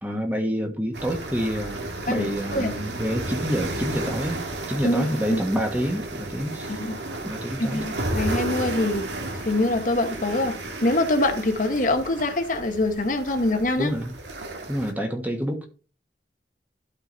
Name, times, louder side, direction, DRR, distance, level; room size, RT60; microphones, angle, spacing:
voice 1, 0.0-6.8 7.2-7.8 13.8-14.1 14.7-15.7, equal, 10° right, 1.3 m, -28 dB
sound 1, 0.9-14.9, right 2 dB, 90° right, 1.8 m, -33 dB
voice 2, 2.1-2.7 4.8-5.4 6.7-7.0 7.6-9.1 9.5-13.9, left 2 dB, 50° left, 1.1 m, -24 dB
11.5 x 5.0 x 4.0 m
head